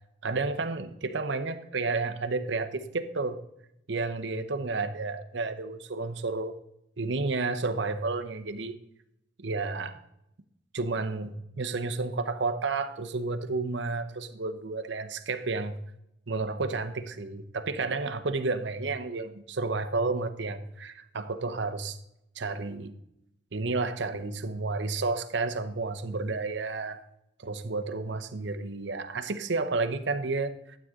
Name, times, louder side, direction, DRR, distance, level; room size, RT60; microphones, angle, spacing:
voice 1, 0.2-3.4 3.9-6.5 7.0-8.8 9.4-10.0 10.7-15.8 16.3-22.0 22.4-22.9 23.5-27.0 27.4-30.5, right 3 dB, 60° right, 9 dB, 0.8 m, -31 dB
12.5 x 7.9 x 3.7 m, 0.80 s
head